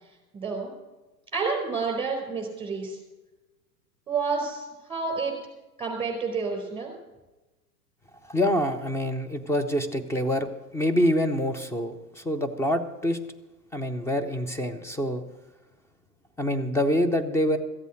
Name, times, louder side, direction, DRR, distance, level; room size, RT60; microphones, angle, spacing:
voice 1, 0.3-0.7 1.3-3.0 4.1-5.3 5.8-6.9, right 4 dB, 10° right, 2 dB, 4.4 m, -29 dB
voice 2, 8.3-13.2 13.7-15.2 16.4-17.6, equal, 5° left, 7 dB, 0.6 m, -26 dB
14.5 x 8.2 x 7.6 m, 1.1 s
hypercardioid pair, 105°, 49 cm